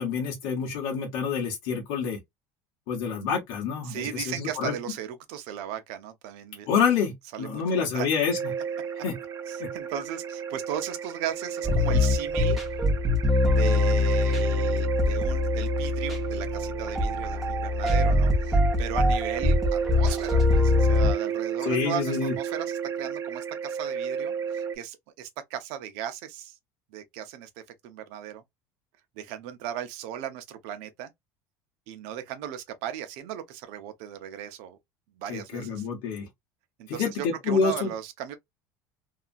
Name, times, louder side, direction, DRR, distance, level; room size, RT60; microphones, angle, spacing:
voice 1, 0.0-2.2 2.9-4.7 6.7-8.4 9.0-9.1 9.6-9.7 21.6-22.3 35.3-36.3 36.9-37.9, left 6 dB, 80° left, 1.0 m, -27 dB
voice 2, 3.8-6.7 7.3-8.1 9.5-12.6 13.4-26.6 26.9-27.5 27.8-28.4 29.2-31.1 31.9-34.8 35.2-35.9 36.8-38.3, right 10 dB, 75° right, 0.7 m, -37 dB
sound 1, 8.3-24.8, right 8 dB, 30° right, 0.4 m, -33 dB
sound 2, 11.6-21.1, left 2 dB, ahead, 0.8 m, -23 dB
2.7 x 2.4 x 2.5 m
supercardioid pair, 120°, 10 cm